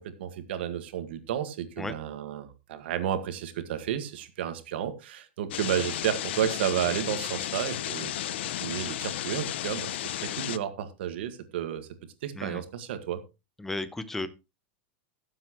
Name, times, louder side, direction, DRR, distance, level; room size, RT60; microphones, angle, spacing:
voice 1, 0.0-8.1 8.5-11.9 12.2-13.2, right 10 dB, 75° right, 1.8 m, -32 dB
sound 1, 5.5-10.6, left 13 dB, 80° left, 0.7 m, -33 dB
voice 2, 13.6-14.3, left 2 dB, 5° left, 0.8 m, -34 dB
18.5 x 7.6 x 3.1 m
supercardioid pair, 160°, 6 cm